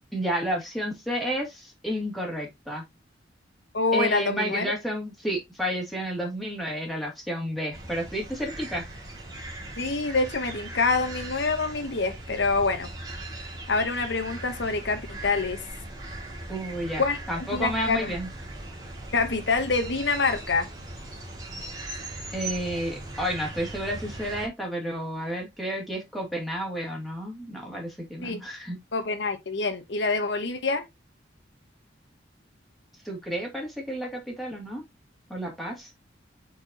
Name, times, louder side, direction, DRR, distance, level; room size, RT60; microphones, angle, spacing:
voice 1, 0.1-2.8 3.9-8.8 16.5-18.3 22.3-28.8 33.0-34.8 35.3-35.9, equal, ahead, 2.4 m, -31 dB
voice 2, 3.7-4.7 9.8-12.9 13.7-15.6 17.0-18.1 19.1-20.7 28.2-28.4 28.9-30.8, left 3 dB, 70° left, 1.0 m, -26 dB
sound 1, 7.7-24.5, right 2 dB, 20° right, 2.3 m, -39 dB
8.3 x 4.5 x 2.9 m
head